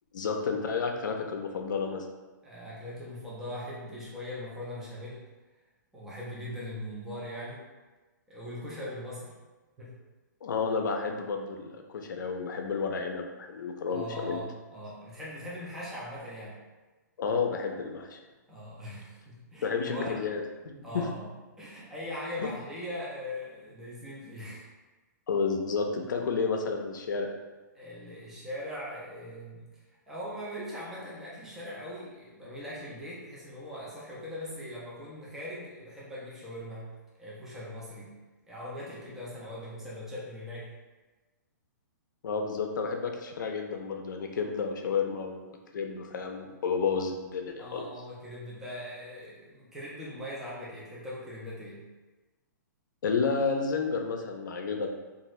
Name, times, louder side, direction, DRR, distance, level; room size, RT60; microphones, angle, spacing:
voice 1, 0.1-2.1 10.4-14.4 17.2-18.2 19.6-21.1 22.4-22.5 25.3-27.3 42.2-45.5 45.7-47.8 53.0-54.9, left 5 dB, 75° left, 3 dB, 0.5 m, -31 dB
voice 2, 2.4-5.2 5.9-7.6 8.3-9.4 9.8-10.0 13.9-16.6 18.5-20.2 20.8-21.3 21.6-24.7 27.7-29.7 30.1-36.9 37.2-38.1 38.5-40.7 47.6-51.8, left 1 dB, 5° right, -7 dB, 0.4 m, -40 dB
2.6 x 2.4 x 3.0 m, 1.2 s
hypercardioid pair, 165°, 10 cm